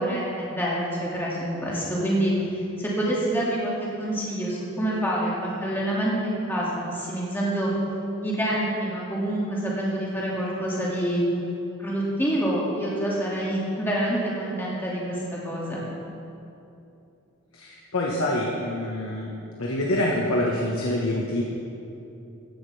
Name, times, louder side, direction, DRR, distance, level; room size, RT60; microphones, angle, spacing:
voice 1, 0.0-2.3 2.8-7.7 8.2-11.2 11.8-15.8, right 1 dB, 10° left, -6 dB, 2.2 m, -27 dB
voice 2, 17.5-19.3 19.6-21.4, left 1 dB, 80° left, -3 dB, 1.3 m, -26 dB
15.0 x 11.0 x 3.4 m, 2.8 s
head